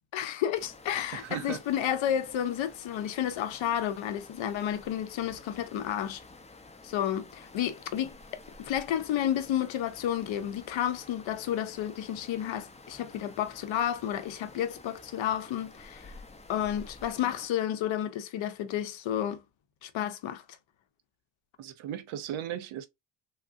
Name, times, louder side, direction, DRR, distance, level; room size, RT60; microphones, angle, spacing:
voice 1, 0.1-6.2 6.8-8.1 8.6-16.1 16.5-19.4 19.8-20.4, left 10 dB, 70° left, 0.7 m, -31 dB
sound 1, 0.5-17.5, left 2 dB, 15° left, 0.5 m, -51 dB
voice 2, 1.1-1.6 21.6-22.9, right 10 dB, 80° right, 0.7 m, -36 dB
3.5 x 2.1 x 2.5 m
cardioid pair, 105°, 48 cm